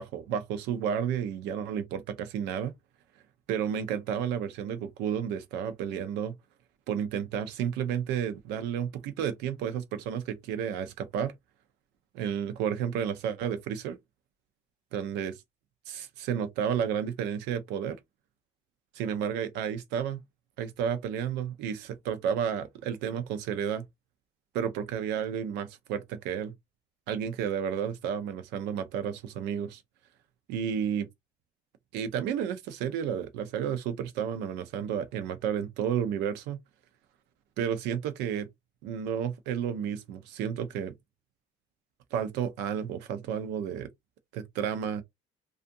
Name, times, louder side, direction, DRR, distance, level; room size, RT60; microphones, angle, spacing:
voice 1, 0.0-2.7 3.5-6.3 6.9-11.3 12.1-14.0 14.9-15.4 15.9-18.0 18.9-20.2 20.6-23.8 24.5-26.5 27.1-29.8 30.5-31.1 31.9-36.6 37.6-38.5 38.8-40.9 42.1-43.9 44.3-45.0, right 8 dB, 90° right, 0.6 m, -31 dB
2.6 x 2.4 x 2.5 m
cardioid pair, 110°, 17 cm